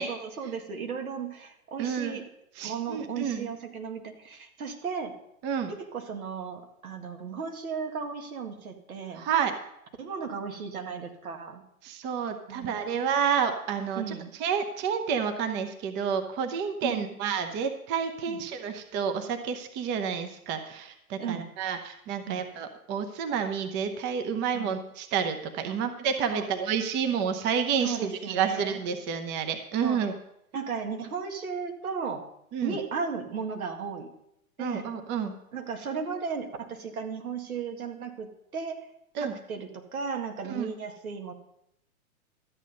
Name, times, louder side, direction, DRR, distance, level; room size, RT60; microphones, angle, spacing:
voice 1, 0.0-2.2 2.6-5.1 5.8-9.2 10.0-11.6 12.5-12.9 14.0-14.3 16.8-17.2 18.3-18.4 21.2-21.4 22.3-22.4 24.5-24.8 25.7-25.8 26.3-26.5 27.8-28.8 29.8-30.1 30.5-32.3 32.6-34.1 34.6-34.9 35.5-38.9 39.2-41.3, right 6 dB, 75° right, 4 dB, 2.0 m, -35 dB
voice 2, 1.8-2.2 2.6-3.5 5.4-5.7 9.1-9.5 11.8-30.1 32.5-32.8 34.6-35.3 39.1-39.3 40.5-40.7, right 7 dB, 25° right, 7 dB, 0.9 m, -29 dB
13.5 x 8.3 x 5.3 m, 0.78 s
hypercardioid pair, 120°, 43 cm